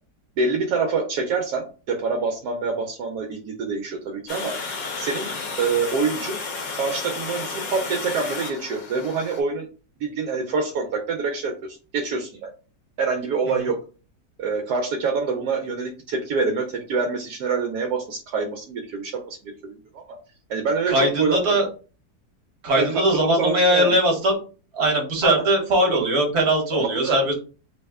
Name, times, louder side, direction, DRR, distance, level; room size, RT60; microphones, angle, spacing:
voice 1, 0.4-4.6 5.0-5.3 5.6-6.4 6.7-9.7 10.0-12.5 13.0-13.8 14.4-20.0 20.5-21.4 22.8-24.0 25.2-25.4 25.8-26.1 26.7-27.2, right 4 dB, 75° right, 3 dB, 1.1 m, -26 dB
Water, 4.3-9.4, left 4 dB, 65° left, 1.2 m, -32 dB
voice 2, 20.9-21.7 22.6-24.4 24.7-27.3, right 1 dB, 45° right, 0 dB, 1.2 m, -20 dB
3.4 x 2.1 x 3.4 m, 0.36 s
omnidirectional pair, 1.8 m